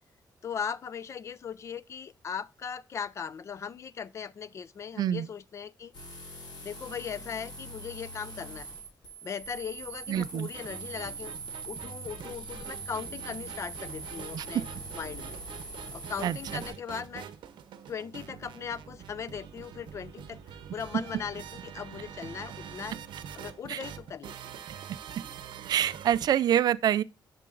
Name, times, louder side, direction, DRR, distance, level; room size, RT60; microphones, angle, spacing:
voice 1, 0.4-5.9 6.6-8.8 9.2-11.3 11.7-14.7 14.9-15.4 15.9-17.3 17.9-20.4 20.7-23.0 23.3-24.7, left 7 dB, 40° left, 0.4 m, -38 dB
sound 1, 5.9-16.7, right 3 dB, 75° left, 3.3 m, -43 dB
voice 2, 10.1-10.5 14.3-14.5 16.2-16.4 23.7-23.8 25.7-27.0, right 10 dB, 60° right, 0.3 m, -25 dB
sound 2, 10.5-26.3, right 8 dB, 90° right, 0.7 m, -45 dB
10.5 x 6.6 x 2.4 m
wide cardioid pair, 170°, 8 cm